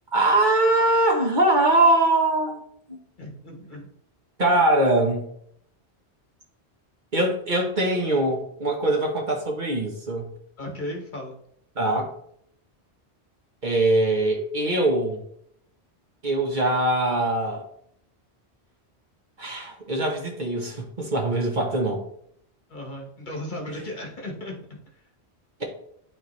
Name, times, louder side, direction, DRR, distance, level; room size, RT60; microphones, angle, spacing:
voice 1, 0.1-2.6 2.9-3.0 4.4-5.3 7.1-10.3 11.8-12.1 13.6-15.2 16.2-17.7 19.4-22.0, right 2 dB, 45° right, 1 dB, 1.4 m, -22 dB
voice 2, 3.2-3.9 10.6-11.4 22.7-25.0, left 1 dB, 45° left, 1 dB, 1.4 m, -36 dB
11.5 x 3.8 x 3.1 m, 0.67 s
omnidirectional pair, 1.1 m